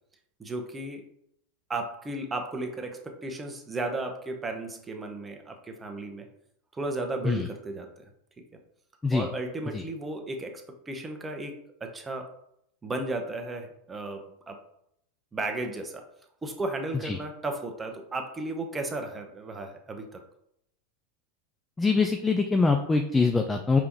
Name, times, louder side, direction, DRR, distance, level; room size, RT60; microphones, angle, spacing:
voice 1, 0.4-1.1 1.7-6.3 6.7-8.0 9.1-11.5 11.8-12.3 12.8-14.6 15.3-16.1 16.4-20.2, right 2 dB, 15° right, 4 dB, 0.8 m, -34 dB
voice 2, 21.8-23.8, left 4 dB, 15° left, 4 dB, 0.4 m, -24 dB
4.9 x 3.5 x 3.0 m, 0.75 s
hypercardioid pair, 95°, 0 cm